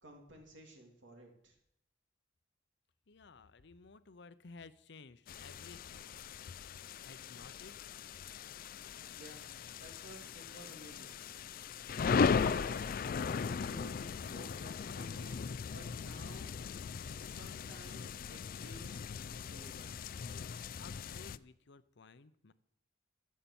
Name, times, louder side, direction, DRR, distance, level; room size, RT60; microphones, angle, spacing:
voice 1, 0.0-1.5 9.1-9.5 9.8-11.2 12.3-12.9 13.4-15.4 15.7-16.5 16.9-19.9, right 1 dB, 75° right, 2 dB, 3.0 m, -54 dB
voice 2, 3.1-6.2 7.0-7.7 20.8-22.5, left 4 dB, 65° left, 14 dB, 0.7 m, -55 dB
sound 1, 5.3-21.4, left 5 dB, 50° left, 0.4 m, -38 dB
sound 2, 11.3-16.5 16.8-16.9 17.3-18.9, right 1 dB, 15° right, 2.3 m, -66 dB
13.5 x 7.5 x 7.0 m, 0.75 s
head